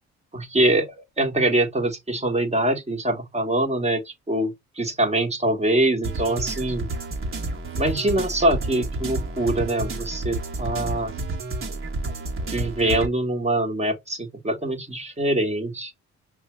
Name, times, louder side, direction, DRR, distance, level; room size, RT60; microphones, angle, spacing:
voice 1, 0.3-0.9 1.2-6.9 7.8-11.1 12.5-15.9, right 1 dB, 20° right, 1.3 m, -24 dB
sound 1, 6.0-13.1, right 2 dB, 45° right, 1.3 m, -30 dB
5.4 x 2.3 x 3.0 m
cardioid pair, 90°, 30 cm